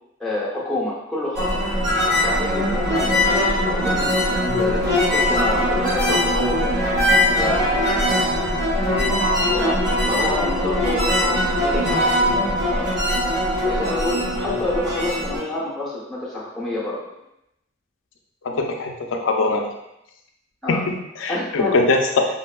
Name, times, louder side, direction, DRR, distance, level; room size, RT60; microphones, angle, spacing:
voice 1, 0.2-1.5 2.1-7.0 7.3-7.6 9.5-9.8 10.1-13.0 13.7-17.0 20.6-20.8 21.3-21.8, left 2 dB, ahead, -7 dB, 0.7 m, -28 dB
sound 1, 1.3-15.4, left 1 dB, 40° right, 1.4 m, -21 dB
voice 2, 8.8-9.2 18.4-19.7 20.7-22.3, left 3 dB, 80° left, 3 dB, 0.4 m, -22 dB
3.1 x 2.6 x 2.2 m, 0.85 s
head